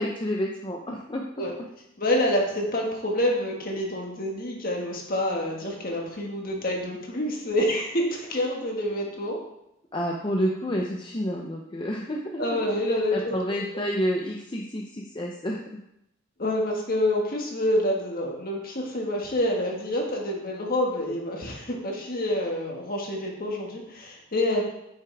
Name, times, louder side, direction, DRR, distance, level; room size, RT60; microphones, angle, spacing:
voice 1, 0.0-1.2 9.9-15.8, equal, 25° left, 0 dB, 0.6 m, -29 dB
voice 2, 2.0-9.4 12.4-13.4 16.4-24.6, left 1 dB, 45° left, 0 dB, 1.7 m, -27 dB
9.7 x 6.5 x 3.5 m, 0.82 s
head